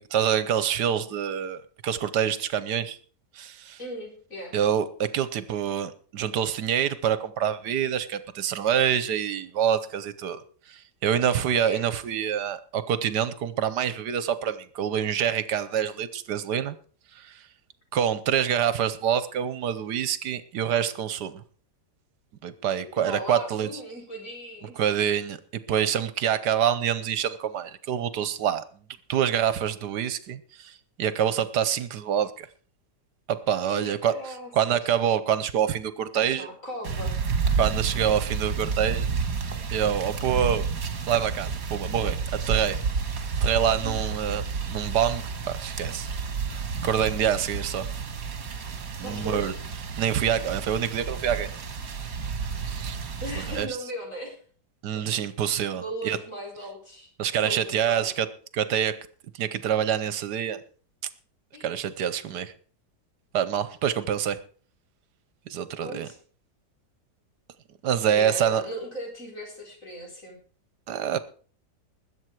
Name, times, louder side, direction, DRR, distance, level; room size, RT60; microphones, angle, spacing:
voice 1, 0.0-3.0 3.3-3.8 4.5-10.4 10.7-16.8 17.1-17.4 17.9-21.4 22.4-23.7 24.8-25.4 25.7-28.6 29.1-32.5 33.3-36.5 37.6-39.1 39.7-40.6 41.1-42.7 43.4-46.1 46.5-47.9 49.0-49.5 50.0-51.5 52.7-53.0 53.5-53.7 54.8-56.2 57.2-58.3 58.5-58.9 59.3-60.6 61.6-62.5 63.3-64.4 65.5-66.1 67.8-68.6 70.9-71.2, right 9 dB, 75° right, 14 dB, 1.4 m, -26 dB
voice 2, 3.8-4.6 11.6-11.8 23.0-24.7 33.7-34.9 36.1-37.2 43.8-43.9 49.0-49.5 53.2-54.4 55.7-57.1 57.3-58.1 61.5-61.7 65.7-66.2 68.1-70.4, equal, 50° left, 0 dB, 4.9 m, -37 dB
sound 1, 36.8-53.7, right 5 dB, 60° right, 1.8 m, -30 dB
21.0 x 8.0 x 4.7 m, 0.42 s
omnidirectional pair, 1.8 m